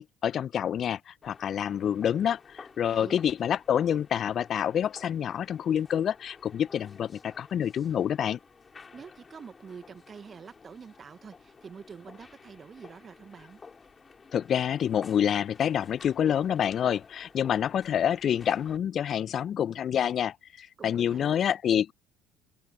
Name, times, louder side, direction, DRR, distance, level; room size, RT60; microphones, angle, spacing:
voice 1, 0.0-8.4 14.3-21.9, left 9 dB, 45° left, 0.9 m, -27 dB
sound 1, 1.2-18.8, left 4 dB, 30° left, 5.4 m, -53 dB
voice 2, 2.9-3.2 8.9-13.6 20.8-21.4, right 6 dB, 35° right, 1.6 m, -46 dB
hypercardioid pair, 60°, 0 cm